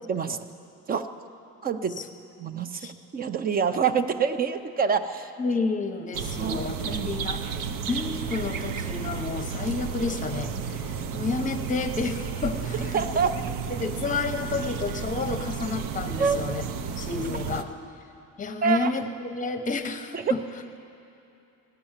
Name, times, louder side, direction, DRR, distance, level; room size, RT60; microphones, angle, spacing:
voice 1, 1.6-2.0 2.4-5.3 6.4-6.6 6.8-7.2 12.9-13.3 16.2-16.4 18.6-18.9 20.1-20.2, right 6 dB, 25° right, 10 dB, 0.5 m, -26 dB
voice 2, 5.4-7.5 7.9-13.4 13.7-17.7 18.4-20.4, left 4 dB, 25° left, 7 dB, 0.8 m, -31 dB
sound 1, 6.1-17.6, right 6 dB, 70° right, 0.8 m, -32 dB
16.0 x 11.0 x 7.3 m, 2.8 s
cardioid pair, 165°, 34 cm